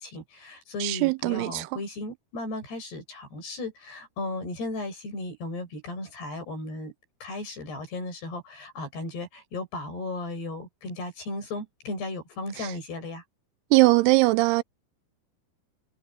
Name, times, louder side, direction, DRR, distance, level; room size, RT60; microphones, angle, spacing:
voice 1, 0.0-6.9 7.2-13.2, left 2 dB, 85° left, 10.0 m, -35 dB
voice 2, 0.8-1.7 13.7-14.6, right 23 dB, 85° right, 2.5 m, -20 dB
omnidirectional pair, 4.6 m